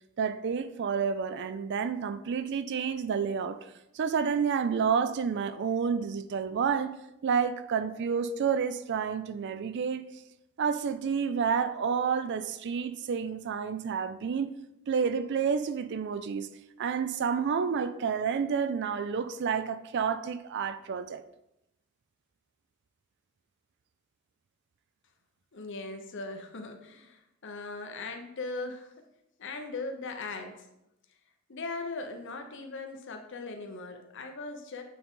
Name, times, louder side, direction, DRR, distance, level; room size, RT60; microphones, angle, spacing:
voice 1, 0.2-7.0 7.2-10.1 10.6-14.5 14.9-16.5 16.8-21.2, right 6 dB, 55° right, 0.4 m, -29 dB
voice 2, 25.5-28.9 29.4-30.7 31.5-34.8, left 3 dB, 60° left, 0.8 m, -39 dB
8.4 x 4.0 x 3.6 m
head